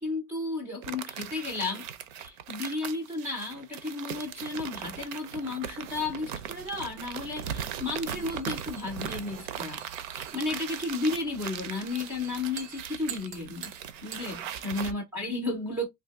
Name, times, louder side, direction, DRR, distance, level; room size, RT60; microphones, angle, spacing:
voice 1, 0.0-1.9 2.2-9.9 10.1-13.7 14.0-15.9, left 3 dB, 5° right, 0.3 m, -33 dB
sound 1, 0.8-14.9, right 9 dB, 55° right, 0.6 m, -39 dB
sound 2, 5.7-14.4, right 8 dB, 85° right, 1.1 m, -47 dB
2.6 x 2.5 x 3.4 m
supercardioid pair, 150°, 48 cm